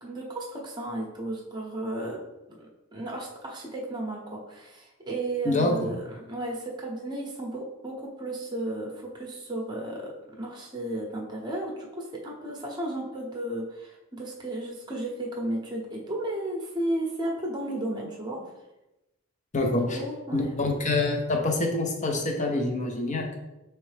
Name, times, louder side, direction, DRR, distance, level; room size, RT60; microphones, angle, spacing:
voice 1, 0.0-2.2 2.5-18.4 19.8-20.5, right 1 dB, 20° right, -1 dB, 0.8 m, -34 dB
voice 2, 5.4-5.9 19.5-20.0 20.3-23.3, left 2 dB, 35° left, 2 dB, 0.7 m, -26 dB
4.4 x 3.1 x 3.3 m, 0.95 s
head